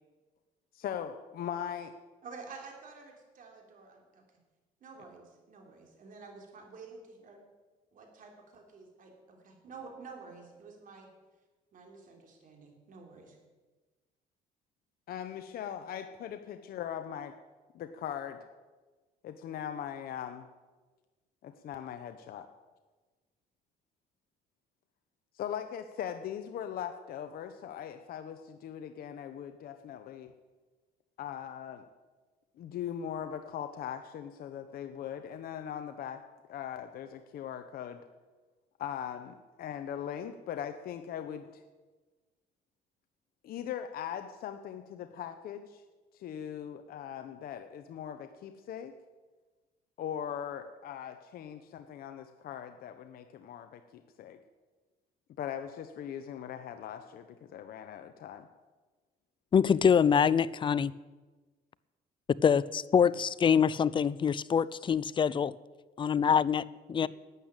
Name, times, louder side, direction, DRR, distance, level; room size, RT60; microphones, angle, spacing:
voice 1, 0.7-1.9 15.1-17.3 17.7-18.5 19.2-20.5 21.4-22.4 25.3-30.3 31.2-31.8 32.6-36.2 36.5-38.0 38.8-41.6 43.4-45.8 46.1-48.9 50.0-54.4 55.4-58.5 67.0-67.1, left 9 dB, 60° left, 0.9 m, -40 dB
voice 2, 2.2-4.2 4.8-7.4 7.9-11.1 11.7-13.4, right 4 dB, 55° right, 3.5 m, -50 dB
voice 3, 59.5-60.9 62.4-65.5 66.0-67.1, left 7 dB, 30° left, 0.4 m, -25 dB
12.0 x 8.3 x 8.8 m
cardioid pair, 110°, 17 cm